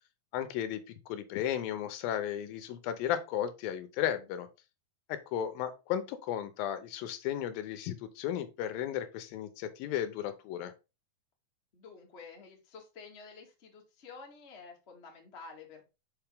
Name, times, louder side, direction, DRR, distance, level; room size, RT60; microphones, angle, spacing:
voice 1, 0.3-4.5 5.1-10.7, left 10 dB, 85° left, 11 dB, 2.5 m, -34 dB
voice 2, 11.7-15.9, left 4 dB, 70° left, 1 dB, 0.6 m, -50 dB
5.8 x 5.2 x 3.5 m, 0.28 s
omnidirectional pair, 4.2 m